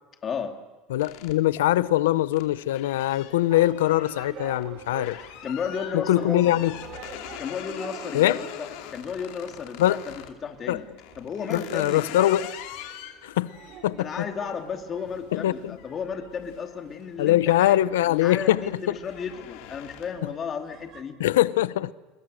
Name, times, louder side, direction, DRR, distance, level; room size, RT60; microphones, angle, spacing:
voice 1, 0.2-0.5 5.4-6.4 7.4-10.1 10.4-10.9 11.2-12.0 14.0-17.8 18.1-21.2, left 6 dB, 35° left, 2.8 m, -33 dB
voice 2, 0.9-5.2 5.9-6.7 8.1-8.4 9.8-10.0 10.7-10.8 11.5-12.5 13.2-13.5 13.8-14.3 15.3-15.8 17.2-18.9 21.2-21.9, left 14 dB, 90° left, 0.8 m, -22 dB
sound 1, 1.0-10.4 11.0-17.4 17.8-18.2 18.5-20.3, left 12 dB, 70° left, 2.6 m, -43 dB
sound 2, 3.5-21.0, right 7 dB, 50° right, 2.9 m, -46 dB
28.0 x 21.5 x 6.5 m
supercardioid pair, 110°, 0 cm